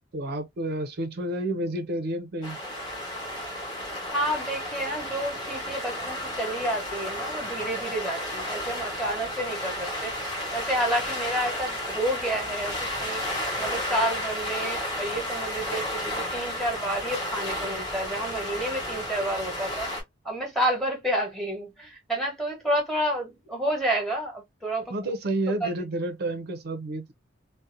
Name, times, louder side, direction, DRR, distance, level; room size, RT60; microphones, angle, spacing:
voice 1, 0.0-2.6 24.9-27.1, right 1 dB, 55° right, 0.5 m, -30 dB
sound 1, 2.4-20.0, left 1 dB, 20° left, 1.1 m, -32 dB
voice 2, 3.8-10.2 10.5-13.2 13.6-19.9 20.2-24.9 25.6-25.7, right 1 dB, ahead, 1.0 m, -30 dB
2.7 x 2.1 x 2.4 m
head